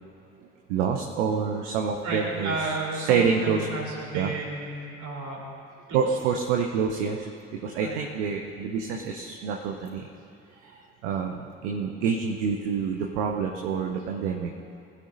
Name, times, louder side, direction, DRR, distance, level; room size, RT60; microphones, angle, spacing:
voice 1, 0.7-2.5 3.0-3.7 4.1-4.3 5.9-10.1 10.6-14.5, right 6 dB, 65° right, 2 dB, 0.9 m, -27 dB
voice 2, 2.0-5.5 5.9-6.0 7.8-8.0, right 2 dB, 50° right, -1 dB, 3.2 m, -32 dB
20.5 x 13.0 x 2.7 m, 2.5 s
figure-of-eight pair, 45°, 38 cm